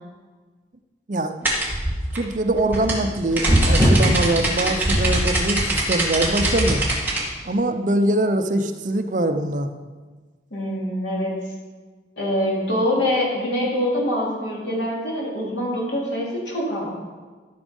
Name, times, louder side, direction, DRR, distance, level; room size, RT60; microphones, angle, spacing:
sound 1, 1.4-7.2, right 1 dB, 10° right, 1.8 m, -20 dB
voice 1, 2.1-6.8 7.4-9.7, right 1 dB, 45° right, 8 dB, 0.6 m, -23 dB
voice 2, 10.5-11.3 12.2-16.9, left 1 dB, 75° left, -4 dB, 3.4 m, -24 dB
13.5 x 6.2 x 5.3 m, 1.4 s
head